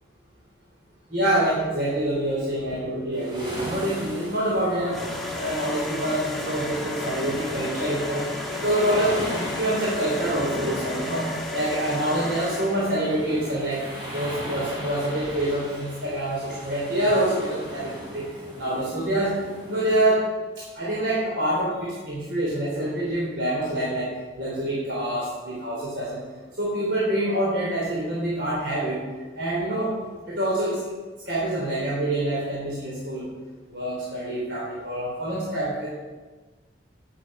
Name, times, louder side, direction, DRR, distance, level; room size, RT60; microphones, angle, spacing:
voice 1, 1.1-5.0 5.3-18.3 18.6-19.4 19.6-20.3 20.7-24.1 24.3-26.2 26.6-29.0 29.3-29.9 30.3-30.8 31.2-33.3 33.7-35.9, right 1 dB, 70° right, -6 dB, 3.2 m, -26 dB
sound 1, 3.1-20.1, equal, 25° right, 4.1 m, -37 dB
sound 2, 4.9-13.0, left 2 dB, ahead, 1.3 m, -33 dB
10.5 x 10.0 x 5.4 m, 1.3 s
head